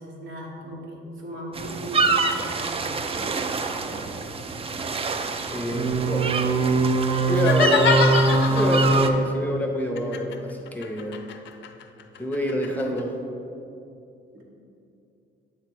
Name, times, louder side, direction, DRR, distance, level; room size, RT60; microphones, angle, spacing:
voice 1, 0.0-2.9 14.3-14.4, equal, 75° right, -3 dB, 1.3 m, -38 dB
sound 1, 1.5-9.1, right 3 dB, 30° right, 0.4 m, -23 dB
voice 2, 5.5-6.4 7.3-11.3 12.2-13.2, left 1 dB, 10° left, 1 dB, 0.6 m, -27 dB
sound 2, 7.3-9.1 10.0-13.0, left 7 dB, 65° left, 0.4 m, -27 dB
7.9 x 2.9 x 4.5 m, 2.7 s
cardioid pair, 90°, 20 cm